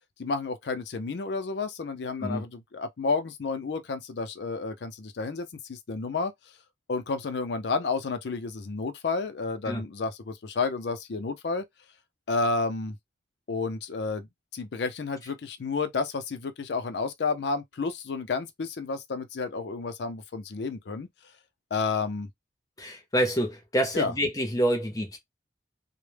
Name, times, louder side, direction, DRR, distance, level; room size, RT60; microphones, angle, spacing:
voice 1, 0.2-6.3 6.9-11.6 12.3-13.0 13.5-14.3 14.5-21.1 21.7-22.3 23.9-24.1, left 4 dB, 75° left, 0.5 m, -31 dB
voice 2, 22.8-25.2, equal, 20° left, 0.6 m, -27 dB
2.1 x 2.1 x 3.2 m
head